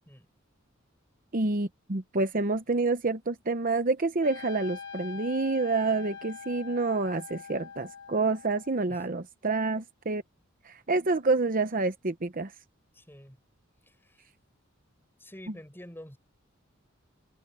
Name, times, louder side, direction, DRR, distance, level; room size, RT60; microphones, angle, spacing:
voice 1, 1.3-10.2 10.6-12.5, right 3 dB, 45° right, 0.9 m, -28 dB
Trumpet, 4.2-8.9, left 6 dB, 65° left, 3.3 m, -44 dB
voice 2, 12.9-13.4 13.8-14.3 15.2-16.2, equal, 10° left, 7.6 m, -48 dB
head